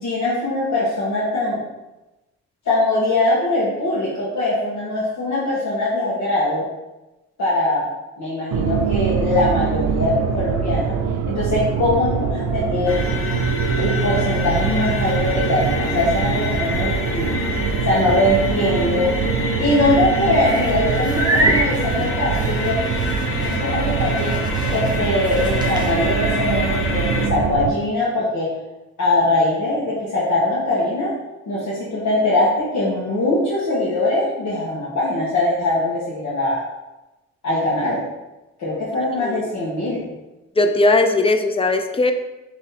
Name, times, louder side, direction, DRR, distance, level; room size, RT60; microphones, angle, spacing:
voice 1, 0.0-1.6 2.6-6.7 7.4-7.8 8.2-11.0 11.3-13.0 13.8-17.3 17.8-19.1 19.6-22.8 23.3-28.5 29.0-31.1 31.5-36.6 37.4-38.0 38.6-40.1, left 2 dB, 65° left, -8 dB, 1.4 m, -21 dB
sound 1, 8.5-27.7, right 7 dB, 65° right, 0.5 m, -24 dB
sound 2, 12.9-27.3, left 3 dB, 45° left, 0.7 m, -27 dB
sound 3, 20.3-26.4, right 1 dB, 15° right, 0.9 m, -27 dB
voice 2, 40.6-42.1, left 2 dB, 20° left, 6 dB, 0.4 m, -18 dB
4.4 x 3.1 x 3.5 m, 1.0 s
cardioid pair, 90°, 30 cm